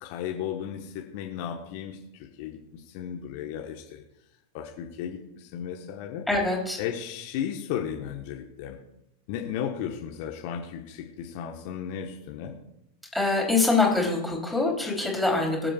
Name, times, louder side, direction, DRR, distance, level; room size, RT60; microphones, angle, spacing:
voice 1, 0.0-4.0 4.5-6.3 6.8-8.8 9.3-12.5, left 9 dB, 45° left, 1 dB, 1.2 m, -35 dB
voice 2, 6.3-6.8 13.1-15.7, left 3 dB, 5° left, -2 dB, 3.4 m, -24 dB
22.5 x 7.6 x 2.4 m, 0.82 s
figure-of-eight pair, 90°, 0 cm